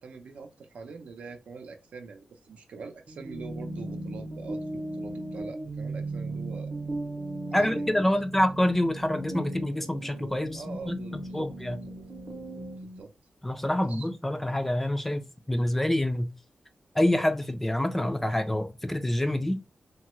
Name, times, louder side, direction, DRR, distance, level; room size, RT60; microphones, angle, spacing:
voice 1, 0.0-6.8 7.5-8.4 10.5-11.5 12.8-13.1 13.8-14.1, right 4 dB, 80° right, 0.6 m, -44 dB
sound 1, 3.1-13.0, right 2 dB, 35° right, 0.7 m, -37 dB
voice 2, 7.5-11.8 13.4-16.3 16.9-19.6, left 1 dB, 10° left, 0.3 m, -27 dB
3.1 x 2.3 x 3.0 m
wide cardioid pair, 165°, 2 cm